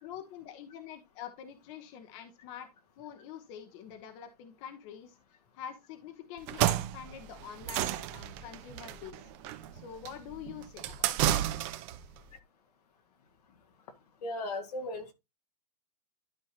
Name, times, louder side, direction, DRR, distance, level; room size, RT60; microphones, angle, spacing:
voice 1, 0.0-2.7 3.0-5.2 5.5-9.3 9.7-11.5, left 9 dB, 50° left, 1.2 m, -46 dB
sound 1, 6.4-12.0, right 12 dB, 50° right, 1.0 m, -32 dB
voice 2, 14.2-15.1, left 2 dB, 75° left, 1.9 m, -36 dB
12.0 x 4.7 x 2.9 m
hypercardioid pair, 115°, 20 cm